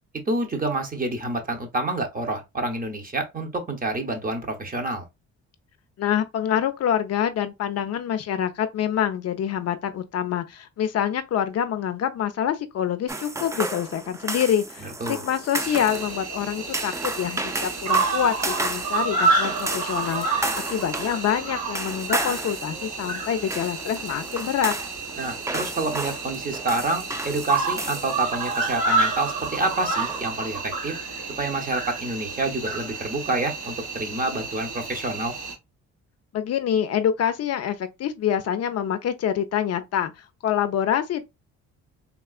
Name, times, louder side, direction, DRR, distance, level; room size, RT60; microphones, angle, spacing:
voice 1, 0.3-5.0 14.8-15.2 25.2-30.9 31.4-35.3, right 2 dB, 30° right, 0.9 m, -28 dB
voice 2, 6.0-20.4 20.7-24.7 36.3-41.2, left 9 dB, 55° left, 0.5 m, -26 dB
sound 1, 13.1-30.3, right 2 dB, 10° right, 0.4 m, -33 dB
Cricket, 15.6-35.5, right 3 dB, 80° right, 1.8 m, -29 dB
3.6 x 2.3 x 2.4 m
cardioid pair, 90°, 30 cm